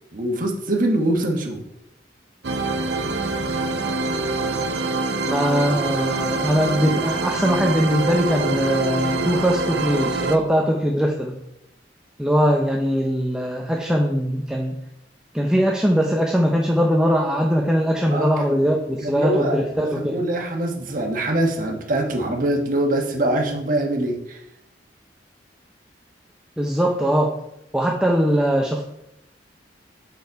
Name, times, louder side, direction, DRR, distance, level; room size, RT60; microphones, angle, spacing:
voice 1, 0.1-1.6 18.1-18.6 19.0-19.6 19.9-24.4, right 1 dB, 50° right, 1 dB, 1.3 m, -23 dB
sound 1, 2.4-10.4, right 3 dB, 75° right, 0.7 m, -25 dB
voice 2, 5.3-11.4 12.2-14.8 15.3-20.2 26.6-27.3 27.7-28.8, equal, 5° right, 0 dB, 0.6 m, -21 dB
6.7 x 5.3 x 4.6 m, 0.84 s
head